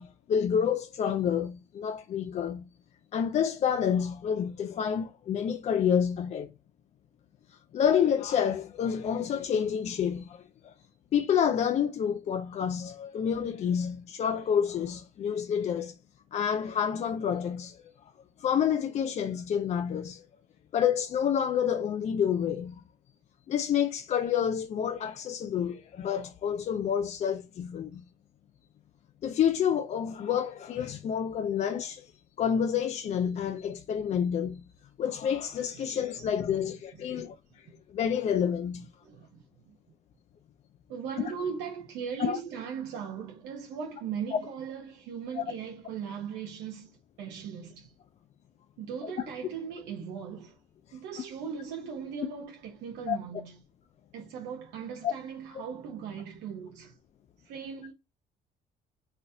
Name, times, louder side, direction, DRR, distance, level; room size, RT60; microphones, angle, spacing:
voice 1, 0.0-2.7 3.1-6.5 7.7-10.7 11.1-15.9 16.3-17.8 18.4-20.2 20.7-22.8 23.5-28.0 29.2-32.1 32.4-34.7 35.0-37.3 37.9-38.9 42.2-42.4 45.4-45.5 49.0-49.1 53.1-53.2 55.0-55.1, left 8 dB, 40° left, 0.4 m, -28 dB
voice 2, 35.7-36.7 37.1-37.4 39.0-39.8 40.9-47.9 48.8-50.6 50.9-53.5 54.1-57.0 57.4-57.9, right 7 dB, 85° right, 0.8 m, -39 dB
4.1 x 2.4 x 2.6 m
cardioid pair, 110°, 17 cm